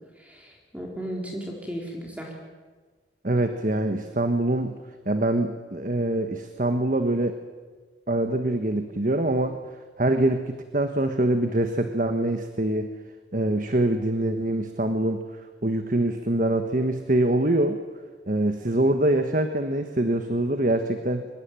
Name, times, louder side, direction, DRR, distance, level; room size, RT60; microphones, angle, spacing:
voice 1, 0.2-2.3, equal, 10° right, -1 dB, 4.0 m, -35 dB
voice 2, 3.2-4.7 5.1-7.4 8.1-9.6 10.0-12.9 13.3-15.2 15.6-17.8 18.3-21.3, right 1 dB, 45° right, 7 dB, 1.4 m, -24 dB
24.0 x 21.5 x 9.1 m, 1.4 s
head